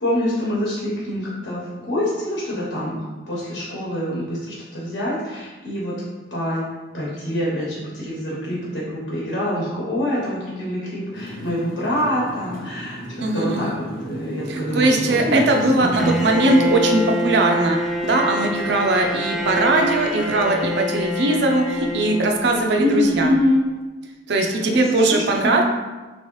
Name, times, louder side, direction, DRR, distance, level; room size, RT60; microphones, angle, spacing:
voice 1, 0.0-3.0 3.3-5.9 6.3-6.6 6.9-16.1 22.8-23.6 24.5-24.6 25.1-25.6, left 1 dB, 75° left, -6 dB, 1.0 m, -25 dB
Motorcycle, 11.1-16.6, equal, 50° left, 0.6 m, -33 dB
voice 2, 13.2-13.8 14.5-17.8 18.0-23.3 24.3-25.6, right 2 dB, 65° right, 2 dB, 0.5 m, -20 dB
Bowed string instrument, 16.0-22.9, left 1 dB, ahead, 0.3 m, -26 dB
3.4 x 3.0 x 3.1 m, 1.2 s
head